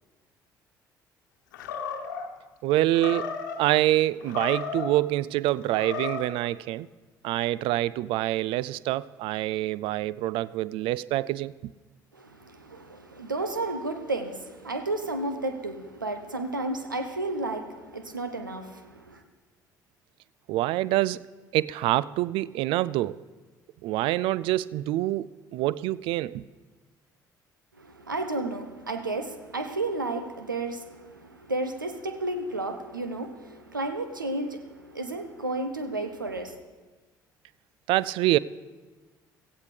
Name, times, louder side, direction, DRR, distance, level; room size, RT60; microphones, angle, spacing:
Animal, 1.5-2.3 2.9-3.6 4.2-5.0 5.6-6.3, left 5 dB, 75° left, 1.2 m, -34 dB
voice 1, 2.6-3.3 3.6-6.9 7.2-11.7 20.5-21.2 21.5-23.2 23.8-26.5 37.9-38.4, right 15 dB, 55° right, 0.3 m, -26 dB
voice 2, 12.1-19.2 27.8-36.6, right 2 dB, 90° right, 0.8 m, -32 dB
16.0 x 15.5 x 3.4 m
figure-of-eight pair, 50°, 10 cm